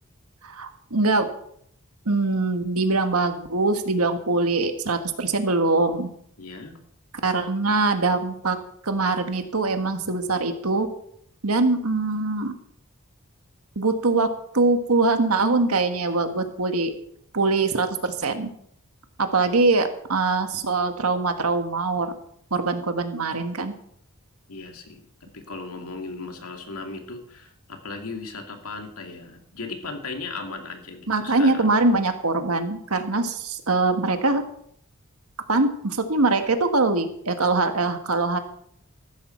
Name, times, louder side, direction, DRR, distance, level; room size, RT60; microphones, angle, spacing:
voice 1, 0.4-1.3 2.0-6.1 7.2-8.6 8.8-10.9 11.4-12.5 13.7-16.9 17.3-18.5 19.2-22.1 22.5-23.7 31.1-34.4 35.5-38.4, right 3 dB, 90° right, 7 dB, 1.7 m, -23 dB
voice 2, 6.4-6.8 24.5-31.7, left 3 dB, 90° left, 4 dB, 2.5 m, -37 dB
15.0 x 12.5 x 4.5 m, 0.69 s
head